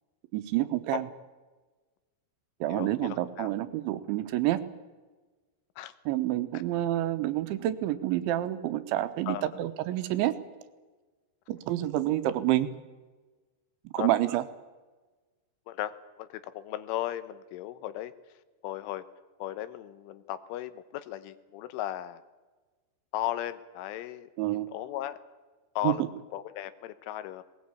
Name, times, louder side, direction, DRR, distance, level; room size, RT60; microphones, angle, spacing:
voice 1, 0.3-1.0 2.6-4.6 6.1-10.3 11.5-12.7 13.9-14.4 24.4-24.7 25.8-25.9, right 14 dB, 80° right, 11 dB, 3.3 m, -28 dB
voice 2, 2.7-3.5 5.8-5.9 9.3-9.6 14.0-14.2 15.7-18.1 18.6-19.0 19.4-22.2 23.1-25.2 25.8-27.4, left 13 dB, 90° left, 13 dB, 3.5 m, -36 dB
20.0 x 19.5 x 8.5 m, 1.3 s
omnidirectional pair, 5.5 m